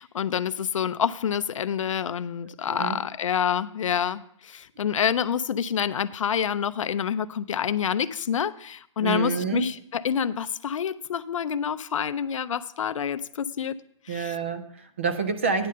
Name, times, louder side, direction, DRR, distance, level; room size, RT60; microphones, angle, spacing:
voice 1, 0.0-13.8 14.1-14.4, left 8 dB, 65° left, 14 dB, 0.4 m, -27 dB
voice 2, 2.7-3.0 9.0-9.7 14.1-15.7, right 5 dB, 25° right, 8 dB, 0.4 m, -28 dB
9.5 x 5.1 x 6.5 m, 0.67 s
hypercardioid pair, 180°, 17 cm